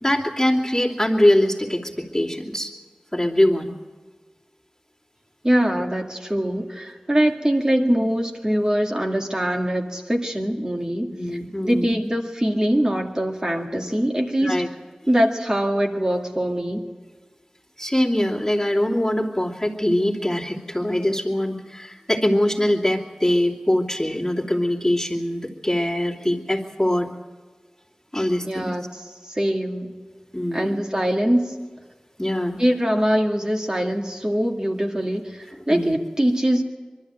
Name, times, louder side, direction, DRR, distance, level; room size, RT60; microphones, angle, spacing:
voice 1, 0.0-2.7 3.1-3.7 11.1-11.9 14.4-14.7 17.8-27.1 28.1-28.7 30.3-30.8 32.2-32.6 35.7-35.9, left 1 dB, 15° left, -3 dB, 2.7 m, -22 dB
voice 2, 5.4-11.1 11.6-14.6 15.1-16.8 28.4-29.9 30.5-31.5 32.6-36.6, equal, 30° right, 2 dB, 2.1 m, -23 dB
23.5 x 12.5 x 9.0 m, 1.4 s
wide cardioid pair, 55°, 2 cm